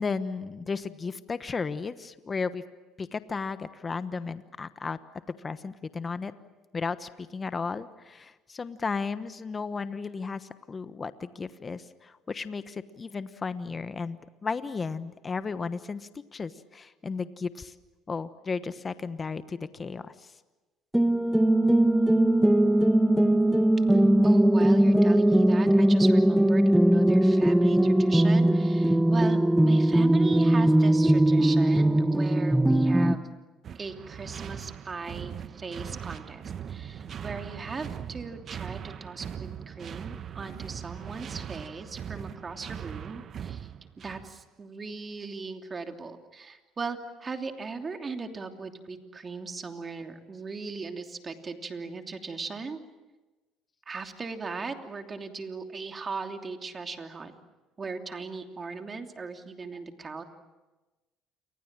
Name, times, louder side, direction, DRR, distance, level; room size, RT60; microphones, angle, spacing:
voice 1, 0.0-2.6 3.0-5.0 5.4-6.3 6.7-17.7 18.1-20.3, left 4 dB, 30° left, 12 dB, 1.2 m, -34 dB
sound 1, 20.9-33.2, right 1 dB, 5° right, 1.1 m, -20 dB
voice 2, 23.9-33.3 33.7-43.7 44.0-52.8 53.9-57.3 57.8-60.2, right 4 dB, 30° right, 5 dB, 3.0 m, -38 dB
sound 2, 33.6-44.4, right 8 dB, 50° right, 1.1 m, -40 dB
29.0 x 24.0 x 7.5 m, 1.2 s
supercardioid pair, 85°, 0 cm